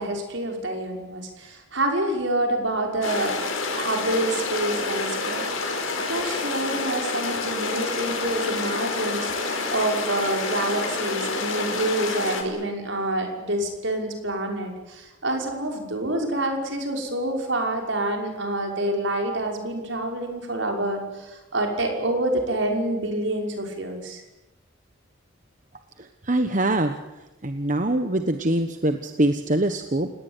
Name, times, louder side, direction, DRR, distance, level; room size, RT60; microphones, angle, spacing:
voice 1, 0.0-3.3 3.7-24.2, right 1 dB, 65° right, 2 dB, 5.8 m, -27 dB
sound 1, 3.0-12.4, left 3 dB, 85° left, 5.2 m, -28 dB
voice 2, 26.0-27.0 27.4-30.1, right 1 dB, 40° right, 7 dB, 1.2 m, -24 dB
29.5 x 18.5 x 9.2 m, 1.0 s
head